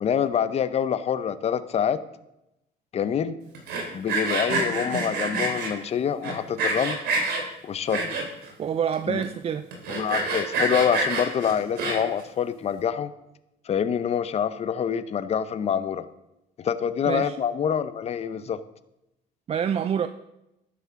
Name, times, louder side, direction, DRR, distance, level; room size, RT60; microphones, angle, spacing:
voice 1, 0.0-2.0 2.9-3.4 3.9-7.0 7.6-8.2 9.1-9.2 9.9-13.1 13.7-16.1 16.6-18.6, left 8 dB, 40° left, 13 dB, 0.6 m, -26 dB
Sawing, 3.5-5.7 6.2-7.4 7.9-8.5 8.9-9.0 9.2-9.3 9.7-12.2, right 3 dB, 75° right, 2.7 m, -27 dB
voice 2, 8.6-9.7 17.1-17.4 19.5-20.1, right 8 dB, 35° right, 10 dB, 0.4 m, -26 dB
12.0 x 9.4 x 3.7 m, 0.89 s
cardioid pair, 110°, 17 cm